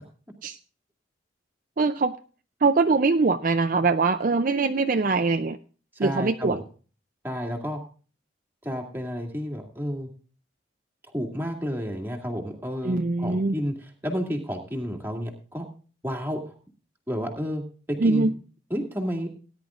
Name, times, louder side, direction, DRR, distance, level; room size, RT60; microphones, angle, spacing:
voice 1, 1.8-2.1 2.6-5.6 6.0-6.6 12.8-13.6 18.0-18.3, right 3 dB, 45° right, 8 dB, 0.4 m, -22 dB
voice 2, 6.0-6.6 7.2-7.8 8.6-10.1 11.1-13.7 14.0-15.7 16.0-16.5 17.1-17.6 17.9-18.3 18.7-19.3, equal, 10° right, 1 dB, 2.0 m, -31 dB
18.5 x 10.5 x 2.5 m, 0.38 s
head